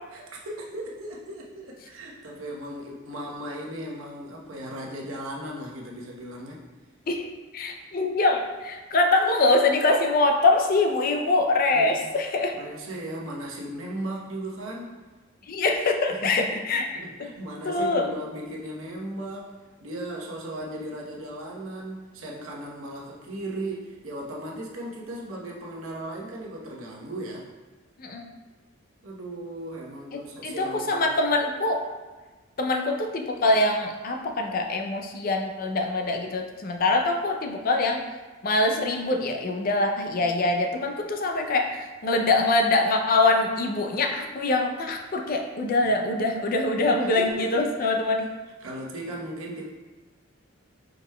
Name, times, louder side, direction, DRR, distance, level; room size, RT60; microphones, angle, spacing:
voice 1, 0.1-6.6 11.7-11.9 12.5-14.9 16.1-19.5 19.8-27.5 29.0-31.1 45.8-45.9 47.0-48.3 48.6-49.7, right 1 dB, 90° right, -3 dB, 1.0 m, -37 dB
voice 2, 7.5-12.6 15.5-16.9 17.6-18.1 28.0-28.3 30.1-31.9 32.6-38.0 38.4-48.3, left 2 dB, 45° left, 3 dB, 0.4 m, -24 dB
4.9 x 4.9 x 2.2 m, 1.3 s
head